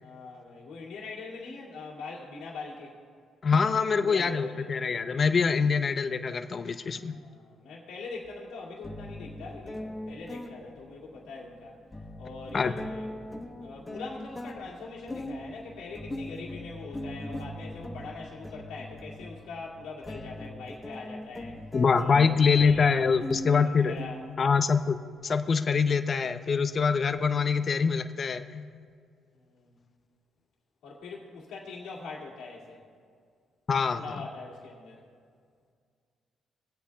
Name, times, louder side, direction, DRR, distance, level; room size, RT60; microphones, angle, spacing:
voice 1, 0.0-2.9 3.9-4.7 6.9-11.7 12.2-13.1 13.6-21.6 21.9-23.0 23.5-24.2 29.3-29.8 30.8-32.8 33.9-35.0, left 3 dB, 90° left, -6 dB, 2.2 m, -42 dB
voice 2, 3.4-7.2 12.5-12.7 21.7-24.0 24.4-25.0 25.2-28.7 33.7-34.0, left 5 dB, 45° left, 9 dB, 0.6 m, -24 dB
sound 1, 8.2-8.3 8.8-24.7, left 1 dB, 20° left, 1.0 m, -40 dB
24.5 x 8.5 x 2.3 m, 2.1 s
cardioid pair, 90°, 0 cm